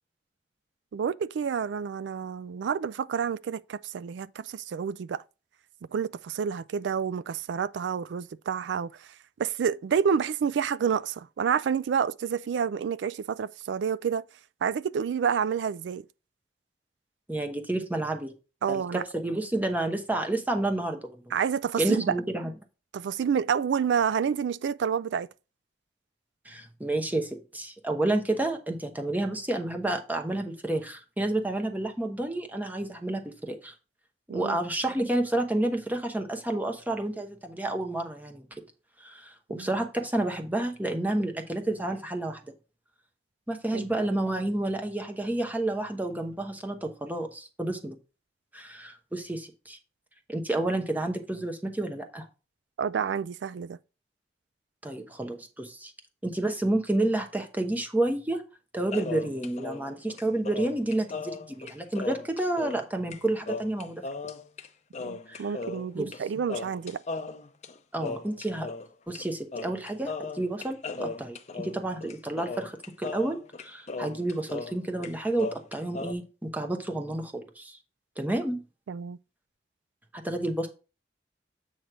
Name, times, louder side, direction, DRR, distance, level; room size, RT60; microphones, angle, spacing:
voice 1, 0.9-5.2 5.9-9.1 9.4-14.2 14.6-16.0 18.6-19.0 21.3-22.1 22.9-25.3 34.3-34.6 39.5-39.7 43.7-43.9 52.8-53.8 65.1-67.0 78.9-79.2, right 7 dB, 75° right, 0.3 m, -29 dB
voice 2, 17.3-18.3 18.7-21.2 21.8-22.5 26.4-33.7 34.3-38.5 39.0-42.4 43.5-48.0 48.5-49.8 50.3-52.3 54.8-55.9 56.2-58.4 58.7-64.0 65.3-65.4 65.9-66.1 67.9-68.7 69.1-77.8 78.2-78.6 80.1-80.7, right 1 dB, 10° right, 0.9 m, -30 dB
sound 1, 58.9-62.9 63.1-63.2 63.5-64.7 64.9-66.2 66.5-68.9 69.1-69.3 69.5-74.8 75.0-76.1, left 4 dB, 40° left, 0.7 m, -37 dB
7.9 x 3.1 x 6.1 m
head